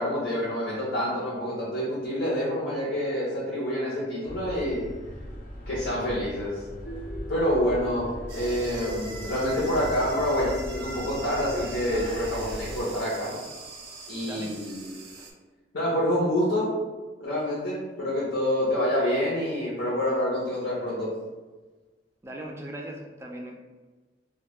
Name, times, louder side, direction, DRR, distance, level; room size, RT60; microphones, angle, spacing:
voice 1, 0.0-4.8 5.7-6.6 7.3-8.1 8.3-13.3 14.1-15.0 15.7-16.7 17.2-21.1, equal, 90° left, -6 dB, 0.7 m, -27 dB
sound 1, 4.3-12.8, equal, 55° left, 0.5 m, -38 dB
sound 2, 8.3-15.3, right 2 dB, 75° right, 0.5 m, -42 dB
voice 2, 22.2-23.6, right 1 dB, 15° right, 1 dB, 0.3 m, -38 dB
2.2 x 2.1 x 3.0 m, 1.3 s
head